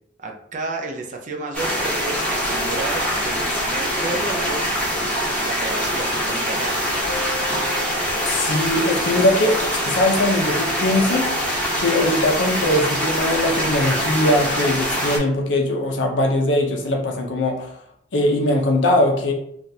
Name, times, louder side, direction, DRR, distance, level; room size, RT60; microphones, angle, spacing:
voice 1, 0.2-4.8 5.4-7.0, right 2 dB, 45° right, 1 dB, 0.5 m, -31 dB
sound 1, 1.5-15.2, equal, 5° left, 0.8 m, -23 dB
sound 2, 7.0-9.7, left 3 dB, 20° right, 1.3 m, -38 dB
voice 2, 8.2-9.6 9.8-17.7 18.1-19.3, left 1 dB, 85° left, 1 dB, 0.7 m, -21 dB
3.4 x 2.4 x 2.8 m, 0.71 s
head